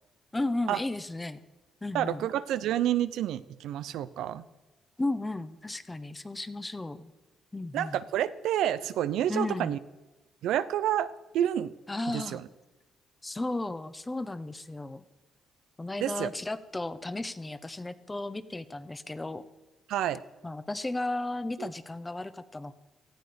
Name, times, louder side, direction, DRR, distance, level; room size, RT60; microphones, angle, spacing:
voice 1, 0.3-1.4 1.8-2.3 5.0-7.1 7.5-8.0 9.3-9.8 11.9-12.4 13.2-15.0 15.8-19.4 20.4-22.8, left 2 dB, 15° left, 12 dB, 1.1 m, -34 dB
voice 2, 1.9-4.4 7.7-9.8 10.4-11.7 12.1-12.4 16.0-16.3 19.9-20.2 21.6-21.7, right 11 dB, 85° right, 13 dB, 0.7 m, -29 dB
18.5 x 14.5 x 5.3 m, 1.1 s
cardioid pair, 90°, 0 cm